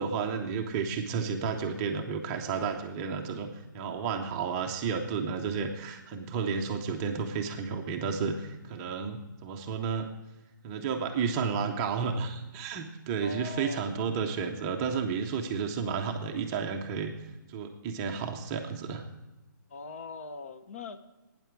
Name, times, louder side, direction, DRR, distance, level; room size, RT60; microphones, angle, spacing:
voice 1, 0.0-10.1 10.6-17.1 17.5-19.1, right 5 dB, 15° right, 3 dB, 0.6 m, -32 dB
voice 2, 13.2-14.0 19.7-21.0, left 3 dB, 40° left, 10 dB, 0.7 m, -41 dB
12.5 x 9.2 x 4.5 m, 1.0 s
hypercardioid pair, 170°, 11 cm